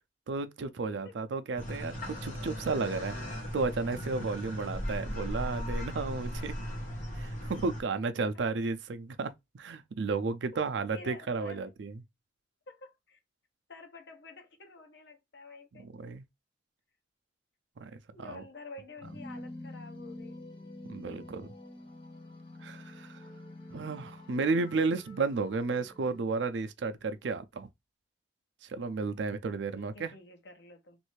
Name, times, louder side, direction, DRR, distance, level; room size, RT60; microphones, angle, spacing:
voice 1, 0.3-3.2 3.5-6.5 7.2-11.9 15.8-16.2 17.8-17.9 18.2-18.4 20.9-21.5 22.6-23.2 23.7-27.7 28.6-30.1, right 4 dB, 80° right, 0.5 m, -33 dB
sound 1, 1.6-7.8, equal, 45° left, 1.3 m, -37 dB
voice 2, 10.5-11.6 12.7-13.2 13.7-15.9 18.1-20.4 29.7-31.0, left 3 dB, 70° left, 0.9 m, -49 dB
sound 2, 19.0-26.2, left 1 dB, 30° left, 0.7 m, -47 dB
3.1 x 2.6 x 3.1 m
head